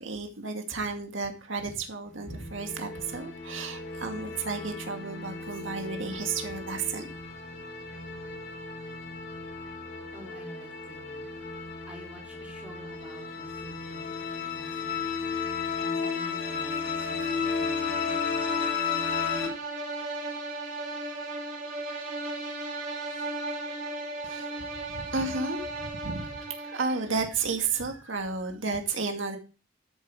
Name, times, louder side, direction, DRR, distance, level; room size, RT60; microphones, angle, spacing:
voice 1, 0.0-7.1 24.2-24.5 24.9-29.4, right 4 dB, 90° right, 4 dB, 2.0 m, -32 dB
sound 1, 2.1-19.5, left 5 dB, 65° left, 4.3 m, -34 dB
voice 2, 7.5-9.5 10.1-11.6 11.9-18.3, equal, 5° right, -2 dB, 3.3 m, -51 dB
sound 2, 16.3-27.2, right 2 dB, 45° right, 3.8 m, -36 dB
12.5 x 7.2 x 4.7 m, 0.34 s
head